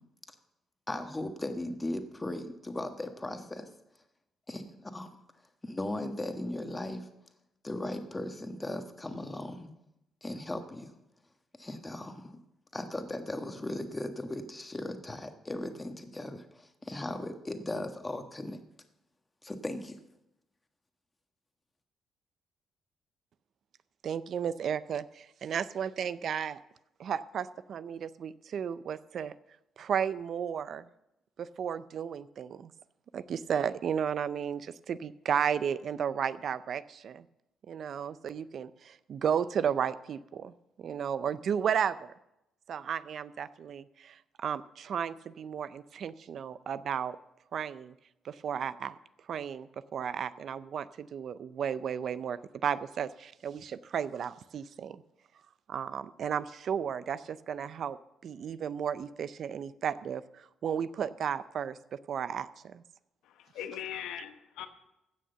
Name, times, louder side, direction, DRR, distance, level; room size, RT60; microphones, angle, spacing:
voice 1, 0.9-3.7 4.5-5.1 5.6-7.1 7.6-9.7 10.2-10.9 11.6-12.3 12.7-18.6 19.4-20.0, left 1 dB, 15° left, 6 dB, 1.4 m, -37 dB
voice 2, 24.0-26.6 27.0-29.3 29.8-30.8 31.4-32.7 33.1-37.2 37.7-40.5 40.8-42.1 42.7-47.2 47.5-47.9 48.2-48.9 49.3-55.0 55.7-58.0 58.2-62.8, right 8 dB, 60° right, 16 dB, 0.5 m, -34 dB
voice 3, 63.2-64.7, left 10 dB, 90° left, 8 dB, 1.0 m, -40 dB
16.0 x 6.4 x 6.9 m, 0.87 s
cardioid pair, 90°, 0 cm